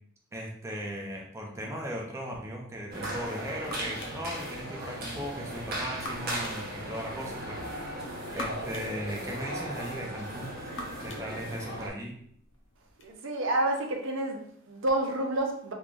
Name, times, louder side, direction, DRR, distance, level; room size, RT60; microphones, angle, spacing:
voice 1, 0.3-10.7 11.0-12.2, equal, 15° right, -1 dB, 0.5 m, -38 dB
sound 1, 2.9-11.9, right 1 dB, 50° right, 1.0 m, -37 dB
sound 2, 3.0-13.1, left 1 dB, 65° left, 0.7 m, -47 dB
voice 2, 13.0-15.7, right 1 dB, 65° right, 2 dB, 0.6 m, -29 dB
3.7 x 3.1 x 2.4 m, 0.64 s
head